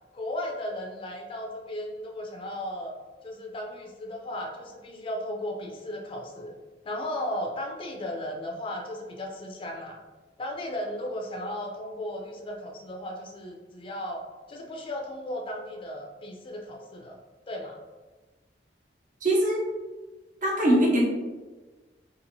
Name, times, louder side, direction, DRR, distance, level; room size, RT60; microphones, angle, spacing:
voice 1, 0.1-2.9 3.2-6.5 6.9-10.0 10.4-14.2 14.5-17.2 17.5-17.8, left 1 dB, 30° left, 1 dB, 0.4 m, -35 dB
voice 2, 19.2-19.6 20.4-21.0, equal, 50° right, -1 dB, 0.6 m, -22 dB
2.9 x 2.5 x 2.6 m, 1.2 s
head